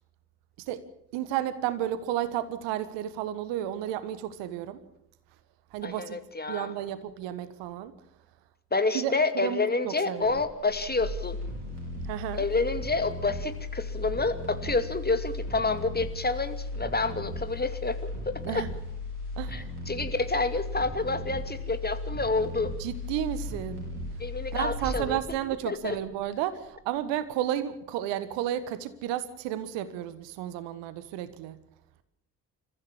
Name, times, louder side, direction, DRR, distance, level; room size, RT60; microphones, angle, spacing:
voice 1, 1.1-4.8 5.7-6.2 6.5-7.9 8.9-10.3 12.1-12.4 18.4-18.7 19.4-19.7 22.8-23.8 24.5-31.5, right 11 dB, 70° right, 14 dB, 1.5 m, -32 dB
voice 2, 5.8-6.7 8.7-11.4 12.3-18.0 18.3-18.6 19.5-22.7 24.2-25.2 25.7-26.0, left 3 dB, 20° left, 9 dB, 2.4 m, -28 dB
sound 1, 10.2-26.3 26.6-26.7, left 2 dB, 85° right, 5.4 m, -36 dB
28.5 x 15.0 x 7.2 m, 0.80 s
figure-of-eight pair, 40°, 45 cm